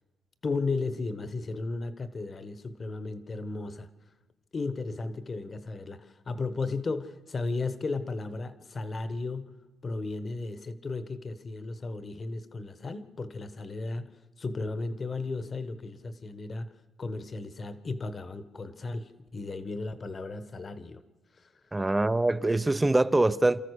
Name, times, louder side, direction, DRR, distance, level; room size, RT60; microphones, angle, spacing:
voice 1, 0.4-3.9 4.5-16.7 17.0-21.0 21.4-21.5, left 3 dB, 40° left, 1.3 m, -35 dB
voice 2, 21.7-23.6, right 2 dB, 15° right, 0.6 m, -24 dB
30.0 x 13.5 x 6.6 m
cardioid pair, 90°, 0 cm